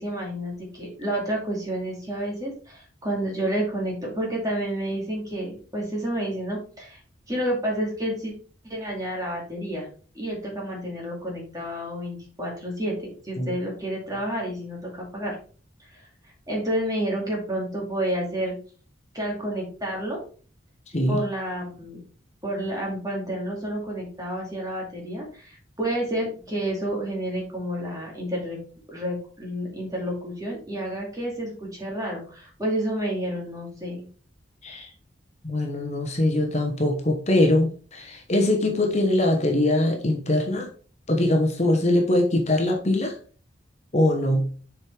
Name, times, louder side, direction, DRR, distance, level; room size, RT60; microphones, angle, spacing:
voice 1, 0.0-7.0 7.3-8.3 8.6-9.9 10.1-15.4 15.8-16.0 16.5-18.5 19.1-20.2 21.1-22.0 22.4-28.6 28.9-34.0, right 1 dB, 20° right, -2 dB, 2.2 m, -30 dB
voice 2, 35.4-40.7 41.1-43.1 43.9-44.5, left 1 dB, 35° left, 2 dB, 1.0 m, -22 dB
7.3 x 4.9 x 3.4 m, 0.41 s
head